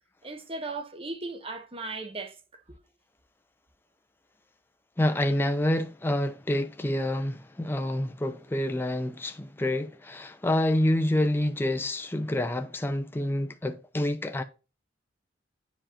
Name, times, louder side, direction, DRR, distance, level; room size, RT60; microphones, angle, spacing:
voice 1, 0.2-2.3, right 3 dB, 30° right, 1.0 m, -36 dB
voice 2, 5.0-14.4, left 1 dB, 10° left, 0.4 m, -27 dB
8.6 x 5.0 x 2.4 m
head